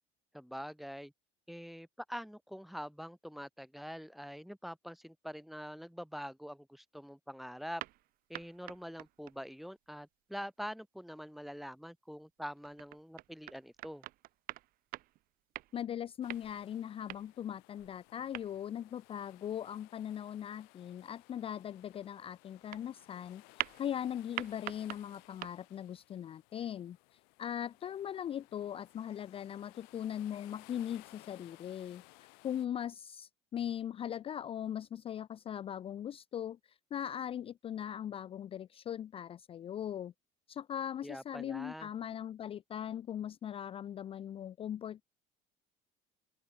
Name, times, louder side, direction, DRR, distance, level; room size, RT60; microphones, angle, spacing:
voice 1, 0.3-1.1 1.5-7.8 8.3-14.1 41.0-41.9, equal, ahead, 0.9 m, -45 dB
sound 1, 7.8-9.4 12.4-15.9 16.3-17.4 17.8-18.6 22.7-22.9 23.6-24.0 24.4-25.5, right 17 dB, 60° right, 0.8 m, -44 dB
voice 2, 15.7-23.4 23.8-27.0 27.4-32.0 32.4-36.6 36.9-40.1 40.5-45.0, left 10 dB, 35° left, 0.4 m, -40 dB
sound 2, 16.2-32.7, left 30 dB, 80° left, 1.4 m, -61 dB
open air
supercardioid pair, 105°, 17 cm